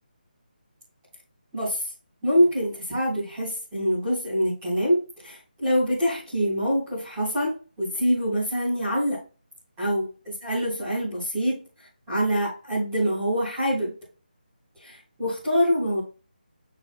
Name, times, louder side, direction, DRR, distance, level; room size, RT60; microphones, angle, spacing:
voice 1, 2.2-9.2 9.8-10.1 10.4-11.5 12.1-13.9 14.8-16.0, equal, 10° right, -12 dB, 4.0 m, -25 dB
7.8 x 6.5 x 2.2 m, 0.34 s
figure-of-eight pair, 180°, 5 cm